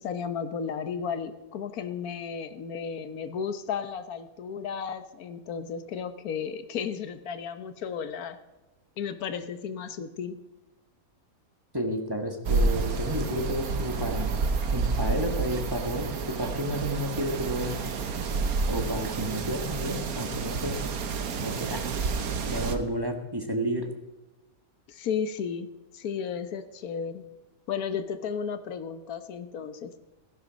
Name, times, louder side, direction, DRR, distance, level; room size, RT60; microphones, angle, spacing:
voice 1, 0.0-8.4 9.0-10.4 24.9-27.2 27.7-29.9, left 7 dB, 90° left, 11 dB, 1.4 m, -34 dB
voice 2, 11.7-14.3 14.7-17.8 18.7-20.8 21.4-21.8 22.5-23.9, right 1 dB, 15° right, 4 dB, 1.6 m, -31 dB
sound 1, 12.4-22.8, right 4 dB, 80° right, 1.6 m, -29 dB
15.5 x 11.0 x 5.2 m, 1.1 s
omnidirectional pair, 1.5 m